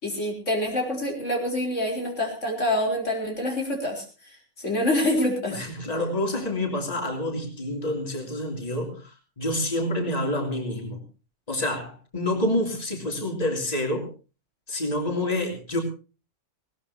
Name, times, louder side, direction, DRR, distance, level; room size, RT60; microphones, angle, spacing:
voice 1, 0.0-5.6, left 1 dB, 80° left, 1 dB, 4.5 m, -26 dB
voice 2, 5.5-11.0 11.5-14.1 14.7-15.8, left 1 dB, 30° left, 2 dB, 3.2 m, -28 dB
20.0 x 18.0 x 2.8 m, 0.33 s
omnidirectional pair, 1.3 m